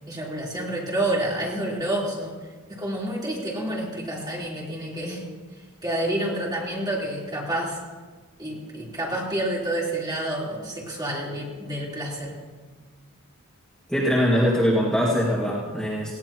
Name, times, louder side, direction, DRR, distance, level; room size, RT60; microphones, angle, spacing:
voice 1, 0.1-2.3 2.7-5.2 5.8-7.8 8.4-12.4, right 1 dB, 20° right, -5 dB, 3.8 m, -29 dB
voice 2, 13.9-16.1, equal, 5° left, -7 dB, 2.0 m, -22 dB
19.0 x 17.0 x 3.0 m, 1.4 s
head